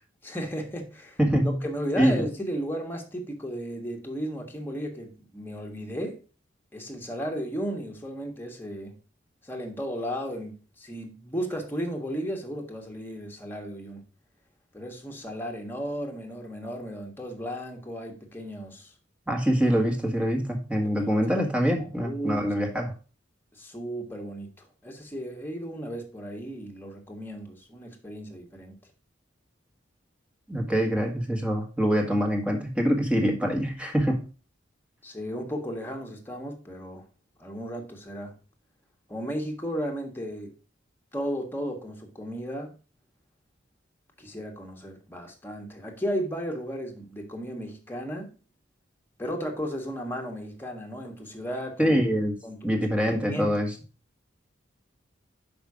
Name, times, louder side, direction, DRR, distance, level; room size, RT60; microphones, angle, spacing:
voice 1, 0.2-1.2 1.6-6.2 6.7-9.0 9.4-14.0 14.7-18.9 20.8-21.3 21.7-22.5 23.5-28.7 35.0-37.0 37.4-38.3 39.1-40.5 41.1-42.7 44.2-48.3 49.2-52.0 52.4-52.8 53.2-53.6, equal, 10° left, 1.5 m, -35 dB
voice 2, 1.2-1.6 2.0-2.2 19.3-22.9 30.5-34.2 51.8-52.3 52.6-53.7, equal, 5° right, 1.6 m, -24 dB
6.2 x 5.3 x 4.8 m
head